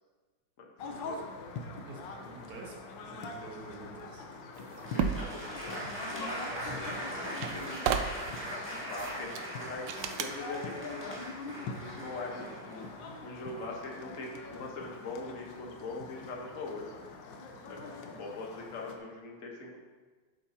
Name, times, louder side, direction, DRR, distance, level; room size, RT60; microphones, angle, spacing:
sound 1, 0.8-19.0, left 3 dB, 75° left, 1.5 m, -44 dB
voice 1, 1.6-2.8 3.1-4.3 5.8-5.9 6.6-7.4, right 2 dB, 55° right, -1 dB, 1.9 m, -48 dB
voice 2, 4.6-7.7 8.5-8.6 8.9-11.2 11.7-12.9 13.2-17.0 17.7-19.8, left 3 dB, 45° left, 0 dB, 1.5 m, -42 dB
sound 2, 4.6-5.3 6.7-6.8 7.1-8.4 9.0-9.5 9.9-10.3, right 7 dB, 80° right, 1.3 m, -33 dB
Applause, 4.8-13.7, equal, 5° right, 1.6 m, -41 dB
11.5 x 8.1 x 2.9 m, 1.4 s
omnidirectional pair, 2.1 m